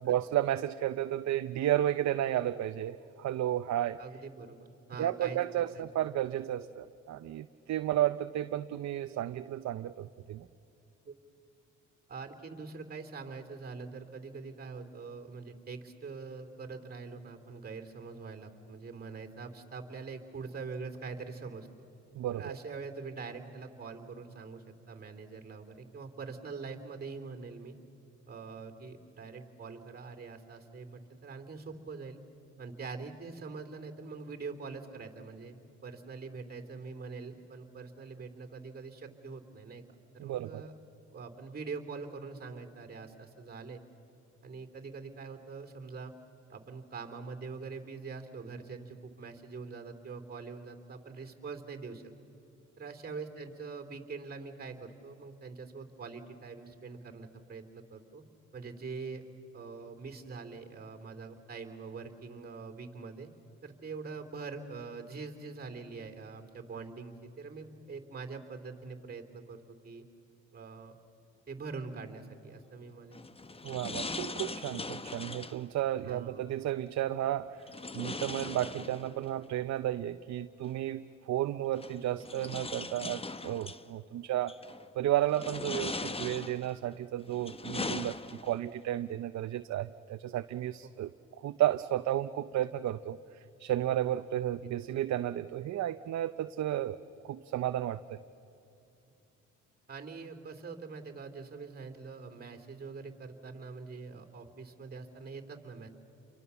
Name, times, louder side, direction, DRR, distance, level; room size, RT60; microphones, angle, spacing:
voice 1, 0.0-4.0 5.0-10.5 22.1-22.5 40.2-40.7 73.6-84.5 85.0-91.1 91.4-97.0 97.2-98.2, right 12 dB, 65° right, 10 dB, 0.7 m, -33 dB
voice 2, 4.0-5.4 5.7-6.0 11.0-11.1 12.1-21.7 22.3-27.7 28.3-32.2 32.6-35.5 35.8-39.8 40.2-40.7 41.1-43.8 44.4-46.1 46.5-52.0 52.8-58.2 58.5-59.2 59.5-63.3 63.6-70.1 70.5-70.9 71.5-73.2 76.0-76.5 94.1-94.2 99.9-105.9, right 4 dB, 30° right, 6 dB, 3.2 m, -44 dB
sound 1, 73.1-75.6 77.7-79.3 80.7-80.8 81.8-83.8 84.5-84.9 85.3-86.8 87.3-88.7, left 3 dB, 20° left, 1.0 m, -40 dB
29.5 x 23.5 x 7.0 m, 2.8 s
cardioid pair, 90°, 30 cm